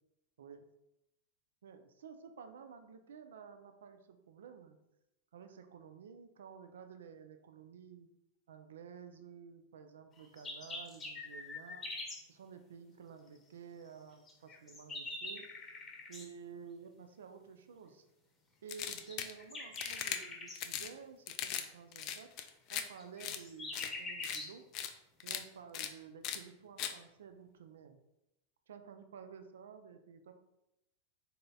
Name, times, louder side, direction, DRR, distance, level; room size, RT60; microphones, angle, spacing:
voice 1, 1.6-4.8 5.3-8.1 8.5-11.9 12.3-15.5 16.1-18.1 18.6-22.3 22.7-24.6 25.2-28.0 28.7-30.3, right 6 dB, 65° right, 7 dB, 0.4 m, -52 dB
sound 1, 10.2-12.2 14.3-16.3 19.0-20.6 23.0-24.5, left 2 dB, 20° left, 0.9 m, -44 dB
sound 2, 18.7-19.3 19.7-20.2 20.6-20.9 21.3-21.7 21.9-22.8 23.2-23.4 23.7-23.9 24.2-24.4 24.7-24.9 25.2-25.4 25.7-25.9 26.2-26.4 26.8-26.9, left 10 dB, 40° left, 0.3 m, -39 dB
4.1 x 3.8 x 2.3 m, 0.87 s
figure-of-eight pair, 90°, 0 cm